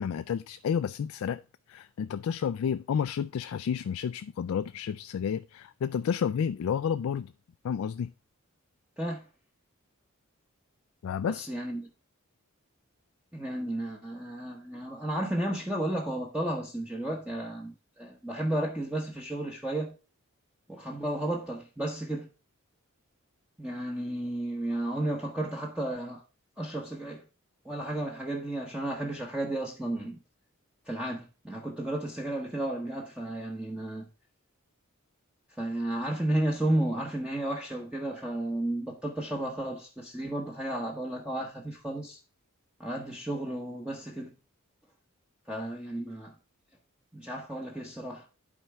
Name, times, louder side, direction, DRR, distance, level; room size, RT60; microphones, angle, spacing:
voice 1, 0.0-1.4 1.7-7.3 7.6-8.1 11.0-11.5, left 7 dB, 70° left, 0.3 m, -31 dB
voice 2, 11.3-11.9 13.3-19.9 20.7-22.3 23.6-26.2 26.6-27.2 27.6-30.2 30.9-34.1 35.6-42.2 42.8-44.3 45.5-46.3 47.1-48.3, right 1 dB, 5° right, 0.8 m, -33 dB
11.0 x 4.5 x 3.4 m
head